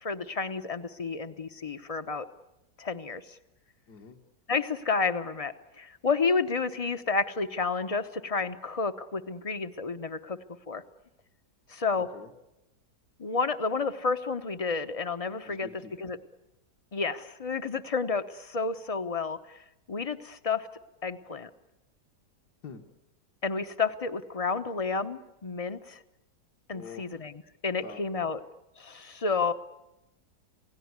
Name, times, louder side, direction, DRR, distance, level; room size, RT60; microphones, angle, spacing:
voice 1, 0.0-2.3 2.8-3.2 4.5-10.4 10.7-10.8 11.7-12.1 13.2-15.7 16.0-16.2 16.9-19.4 19.9-20.7 21.0-21.5 23.4-26.0 26.7-27.3 27.6-28.4 28.8-29.5, left 4 dB, 25° left, 10 dB, 0.8 m, -30 dB
voice 2, 3.9-4.2 12.1-12.3 15.4-16.1 22.6-22.8 26.7-27.3 27.8-28.2, left 6 dB, 70° left, 2 dB, 2.2 m, -46 dB
27.5 x 18.0 x 9.6 m, 0.93 s
omnidirectional pair, 1.8 m